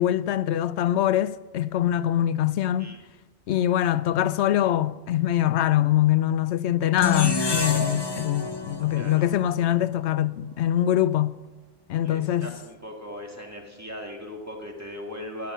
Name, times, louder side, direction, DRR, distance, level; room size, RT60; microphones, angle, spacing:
voice 1, 0.0-2.9 3.5-11.4 11.9-12.5, left 12 dB, 70° left, 0.8 m, -23 dB
sound 1, 7.0-10.2, left 3 dB, 25° left, 0.8 m, -29 dB
voice 2, 9.0-9.3 12.0-15.5, left 1 dB, 15° right, 2.1 m, -38 dB
17.5 x 10.5 x 5.6 m
omnidirectional pair, 1.3 m